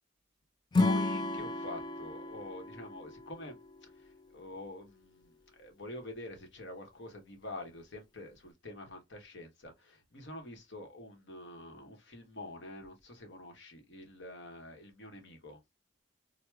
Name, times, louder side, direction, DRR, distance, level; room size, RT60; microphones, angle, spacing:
Acoustic guitar / Strum, 0.7-4.0, left 2 dB, 25° left, 0.3 m, -32 dB
voice 1, 0.8-3.6 3.9-15.6, left 2 dB, 65° left, 0.9 m, -46 dB
4.5 x 2.0 x 2.2 m
head